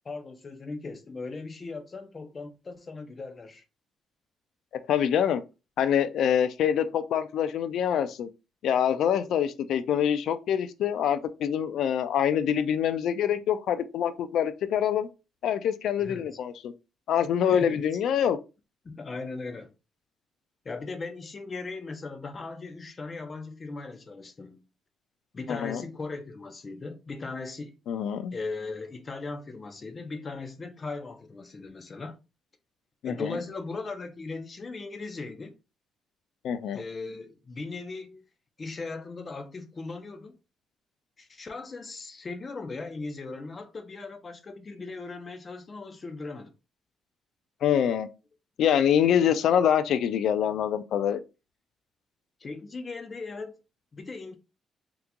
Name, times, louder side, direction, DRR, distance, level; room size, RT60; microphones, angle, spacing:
voice 1, 0.0-3.6 16.0-16.4 17.4-17.8 18.8-19.7 20.6-24.6 25.3-27.8 28.3-32.2 33.0-35.6 36.7-38.2 38.6-40.3 41.2-46.5 52.4-53.6 53.9-54.4, left 3 dB, 35° left, 0.6 m, -38 dB
voice 2, 4.9-5.4 5.8-8.3 8.6-15.1 15.4-16.7 17.1-18.4 25.5-25.8 27.9-28.3 33.0-33.4 36.4-36.8 47.6-48.1 48.6-51.2, left 9 dB, 75° left, 0.4 m, -25 dB
3.6 x 2.9 x 2.2 m
cardioid pair, 90°, 0 cm